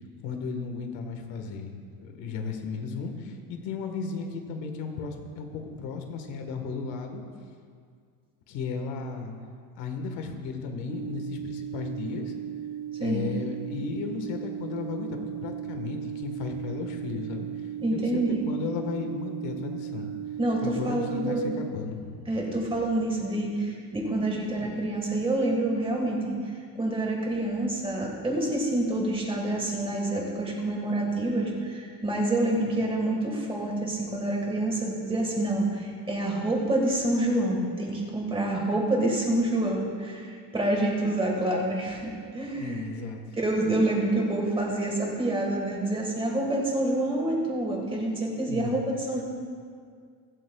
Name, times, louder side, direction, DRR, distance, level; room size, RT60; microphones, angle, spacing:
voice 1, 0.2-7.2 8.5-9.3 9.7-12.3 13.0-17.5 17.9-20.1 20.6-22.3 32.6-32.8 42.6-43.2 48.5-48.8, left 5 dB, 75° left, 4 dB, 1.5 m, -35 dB
sound 1, 10.9-21.7, right 10 dB, 45° right, 0.6 m, -36 dB
voice 2, 17.8-18.4 20.4-21.6 22.3-42.8 43.4-49.2, right 1 dB, 15° right, -1 dB, 1.6 m, -27 dB
22.5 x 8.1 x 2.3 m, 2.1 s
cardioid pair, 175°, 43 cm